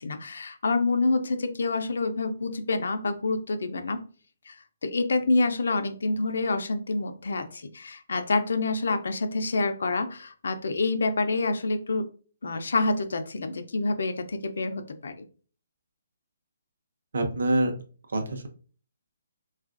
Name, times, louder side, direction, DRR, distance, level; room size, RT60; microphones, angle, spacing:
voice 1, 0.0-4.0 4.5-4.6 4.8-12.1 12.4-15.2, left 3 dB, 65° left, 8 dB, 0.5 m, -27 dB
voice 2, 17.1-17.8 18.1-18.5, right 1 dB, 60° right, 4 dB, 0.7 m, -25 dB
3.7 x 2.4 x 2.4 m, 0.40 s
hypercardioid pair, 180°, 0 cm